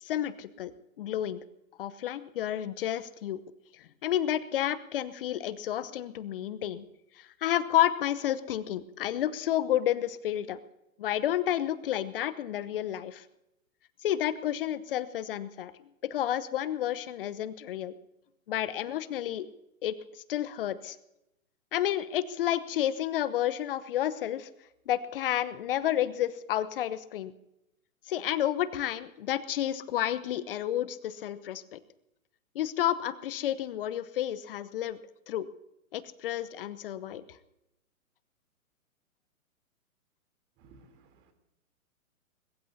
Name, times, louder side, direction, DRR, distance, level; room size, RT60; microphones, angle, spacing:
voice 1, 0.0-0.7 1.0-1.4 1.8-3.4 3.8-6.8 7.2-10.6 11.0-13.2 14.0-15.7 16.1-17.9 18.5-19.5 19.8-21.0 21.7-24.5 24.9-27.3 28.1-31.8 32.5-35.0 35.3-35.5 35.9-37.2, left 12 dB, 40° left, 15 dB, 1.0 m, -30 dB
voice 2, 40.6-41.3, right 3 dB, 25° right, 6 dB, 3.3 m, -58 dB
22.0 x 21.5 x 2.8 m, 0.86 s
figure-of-eight pair, 125°, 42 cm